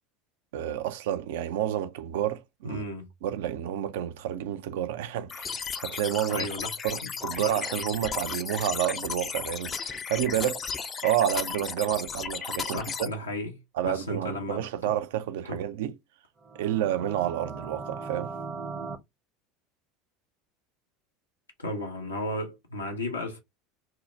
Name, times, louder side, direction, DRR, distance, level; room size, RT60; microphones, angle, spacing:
voice 1, 0.5-2.8 3.2-6.5 6.8-13.1 13.7-15.9 16.6-18.3, right 11 dB, 70° right, 0.4 m, -30 dB
voice 2, 2.6-3.1 6.3-6.8 7.0-7.1 7.4-7.6 12.6-14.6 15.5-15.6 21.6-23.4, left 1 dB, 90° left, 0.6 m, -34 dB
sound 1, 5.3-13.1, left 6 dB, 30° left, 0.4 m, -35 dB
sound 2, 16.4-19.0, right 4 dB, 25° right, 0.6 m, -38 dB
2.8 x 2.0 x 3.0 m
figure-of-eight pair, 75°, 0 cm